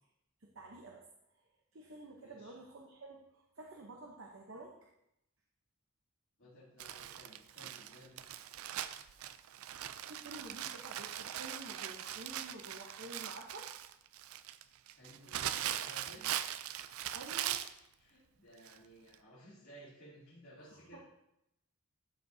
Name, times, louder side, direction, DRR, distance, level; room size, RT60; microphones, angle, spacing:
voice 1, 0.4-1.0 1.7-4.8 10.1-13.7 17.1-17.6 20.7-21.0, right 2 dB, 60° right, 0 dB, 0.8 m, -50 dB
voice 2, 2.1-2.6 6.4-8.2 14.9-16.3 18.0-21.0, equal, 70° left, -12 dB, 2.8 m, -57 dB
Crumpling crinkling, 6.8-17.8 18.7-18.8 19.1-19.2, right 11 dB, 85° right, 0.4 m, -41 dB
12.5 x 5.0 x 2.7 m, 0.83 s
head